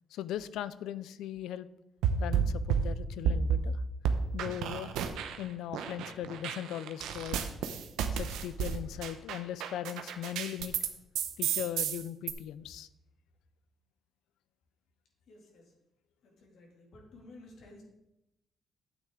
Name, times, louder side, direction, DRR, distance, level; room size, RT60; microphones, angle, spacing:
voice 1, 0.1-1.7 2.2-3.8 4.3-5.0 5.4-7.4 8.1-10.8 11.4-12.9, left 11 dB, 85° left, 17 dB, 0.4 m, -39 dB
sound 1, 2.0-3.7 4.0-5.4 5.7-10.9 11.1-12.3, right 7 dB, 90° right, 0.8 m, -31 dB
voice 2, 15.3-15.6 16.2-17.8, left 2 dB, 70° left, 0 dB, 2.7 m, -54 dB
9.3 x 8.1 x 3.8 m, 0.88 s
cardioid pair, 90°, 0 cm